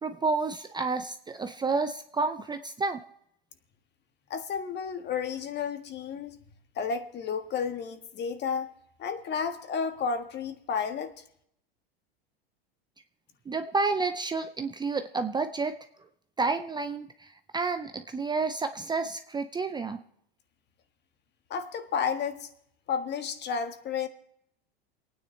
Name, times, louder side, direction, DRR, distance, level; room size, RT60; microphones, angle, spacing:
voice 1, 0.0-3.0 13.5-15.8 16.4-20.0, right 4 dB, 15° right, 8 dB, 0.6 m, -30 dB
voice 2, 4.3-6.4 6.7-8.7 9.0-11.1 21.5-22.5 22.9-24.1, left 6 dB, 35° left, 8 dB, 1.5 m, -32 dB
28.5 x 9.6 x 3.3 m, 0.73 s
hypercardioid pair, 100°, 29 cm